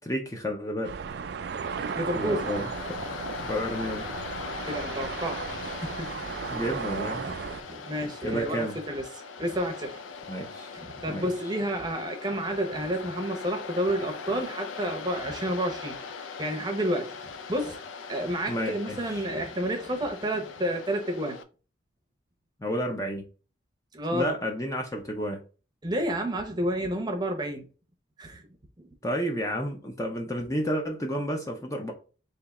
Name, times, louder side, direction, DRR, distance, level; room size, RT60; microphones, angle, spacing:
voice 1, 0.1-0.9 2.2-3.0 3.4-4.2 6.5-7.3 8.2-8.8 10.3-10.7 11.1-11.3 18.5-19.3 22.6-23.3 24.1-25.4 29.0-31.9, equal, 15° left, 0.5 m, -31 dB
sound 1, 0.8-7.6, right 6 dB, 55° right, 0.3 m, -35 dB
Waves surf, 1.6-21.4, left 5 dB, 80° left, 0.5 m, -40 dB
voice 2, 1.9-2.4 4.6-6.2 7.3-9.0 9.4-10.0 10.7-17.8 18.1-21.4 23.9-24.3 25.8-27.6 28.2-28.5 28.8-28.9, right 1 dB, 20° right, 0.7 m, -30 dB
3.5 x 2.8 x 4.0 m
head